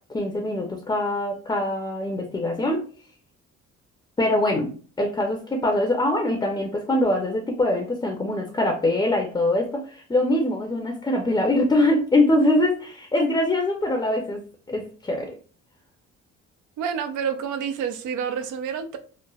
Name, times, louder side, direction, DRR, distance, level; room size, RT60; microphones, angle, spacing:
voice 1, 0.1-2.9 4.2-14.4 14.7-15.3, left 1 dB, 15° left, 0.5 m, -23 dB
voice 2, 16.8-19.0, right 7 dB, 90° right, 0.5 m, -28 dB
3.1 x 2.0 x 2.3 m
cardioid pair, 90°, 30 cm